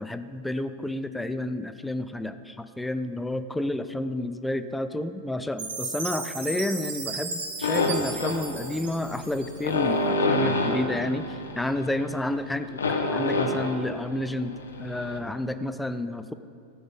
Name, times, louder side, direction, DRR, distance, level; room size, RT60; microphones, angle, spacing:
voice 1, 0.0-12.8 13.1-14.5 14.8-16.3, left 1 dB, 5° left, 11 dB, 0.5 m, -30 dB
Chime, 5.6-9.8, right 4 dB, 65° right, 1.8 m, -35 dB
sound 1, 7.6-15.2, left 2 dB, 75° left, 1.3 m, -28 dB
15.5 x 7.8 x 5.2 m, 2.5 s
figure-of-eight pair, 90°, 0 cm